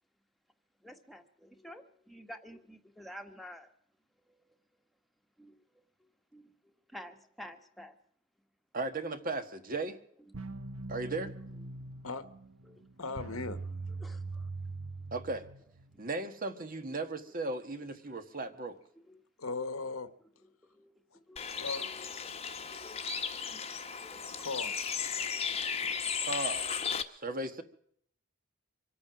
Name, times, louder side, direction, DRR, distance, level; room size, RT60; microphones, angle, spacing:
voice 1, 0.8-3.7 5.4-5.5 6.3-6.5 6.9-7.9 12.7-12.8 14.0-14.5 16.1-16.3 16.7-16.8 19.1-19.2 20.7-22.1 22.8-23.1 23.5-23.6 24.0-24.2, equal, ahead, 4 dB, 1.6 m, -50 dB
voice 2, 8.7-10.0 10.9-11.3 15.1-15.4 16.0-18.8 26.2-26.8 27.1-27.6, right 2 dB, 40° right, 8 dB, 1.6 m, -36 dB
sound 1, 10.3-15.9, right 3 dB, 80° right, 1.0 m, -42 dB
voice 3, 13.0-13.6 19.4-20.1 21.1-21.2 21.6-22.1 22.5-22.6 24.4-24.8, left 3 dB, 85° left, 12 dB, 1.5 m, -38 dB
Bird, 21.4-27.0, left 6 dB, 30° left, 1.2 m, -35 dB
25.5 x 8.7 x 6.1 m, 0.63 s
head